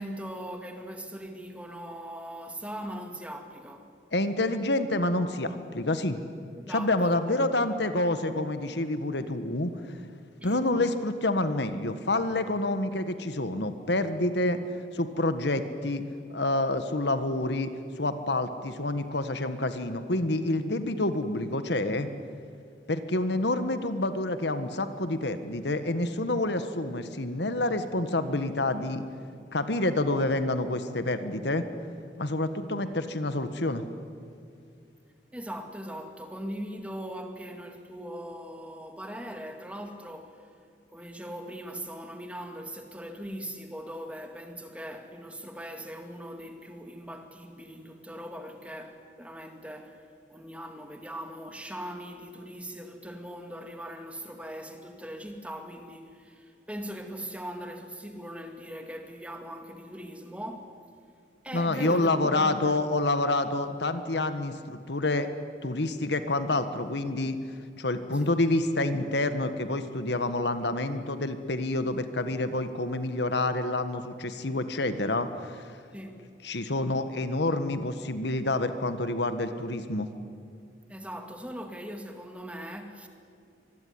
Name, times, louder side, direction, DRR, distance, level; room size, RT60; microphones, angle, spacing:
voice 1, 0.0-3.9 6.6-7.2 10.4-10.7 32.8-33.0 35.3-40.5 40.9-60.8 61.4-62.8 68.1-68.3 75.9-76.3 80.9-83.1, equal, 5° right, 2.1 m, -40 dB
voice 2, 4.1-6.2 6.7-9.7 10.4-14.6 14.9-16.0 16.3-17.7 18.0-22.1 22.9-29.0 29.5-31.6 32.2-33.8 61.5-65.3 65.6-67.4 67.8-75.7 76.4-80.1, left 2 dB, 65° left, 1.6 m, -28 dB
25.0 x 21.0 x 9.7 m
head